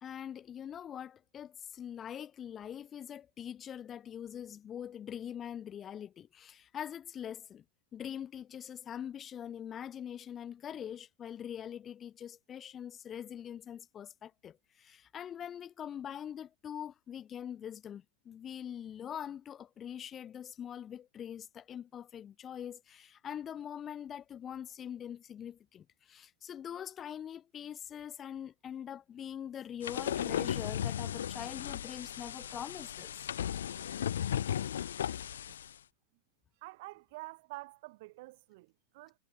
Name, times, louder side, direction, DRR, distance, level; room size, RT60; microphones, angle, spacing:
voice 1, 0.0-7.6 7.9-33.1, left 9 dB, 30° left, 2.8 m, -43 dB
sound 1, 29.8-35.7, left 9 dB, 75° left, 1.2 m, -36 dB
voice 2, 36.6-39.1, right 22 dB, 55° right, 3.4 m, -48 dB
hypercardioid pair, 95°, 0 cm